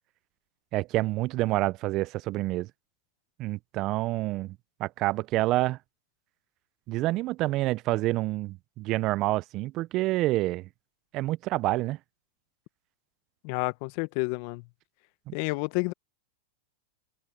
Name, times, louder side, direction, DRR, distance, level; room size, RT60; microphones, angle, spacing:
voice 1, 0.7-2.7 3.4-5.8 6.9-10.7 11.1-12.0 15.3-15.4, right 18 dB, 45° right, 0.6 m, -28 dB
voice 2, 13.4-14.6 15.3-15.9, left 28 dB, 55° left, 1.2 m, -30 dB
hypercardioid pair, 105°, 0 cm